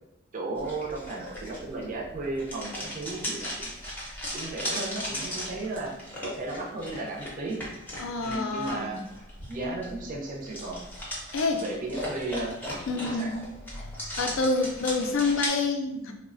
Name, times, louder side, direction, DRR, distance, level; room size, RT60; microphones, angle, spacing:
voice 1, 0.3-3.7 4.3-5.9 6.2-7.6 8.2-9.0 9.5-10.8 11.6-12.6 13.1-13.3, right 2 dB, 35° right, -1 dB, 0.5 m, -34 dB
sound 1, 0.6-15.5, equal, 10° left, 0.5 m, -37 dB
voice 2, 8.0-9.0 11.3-11.7 12.9-13.4 14.2-16.1, left 3 dB, 65° left, 4 dB, 0.4 m, -27 dB
3.1 x 2.1 x 2.4 m, 0.90 s
head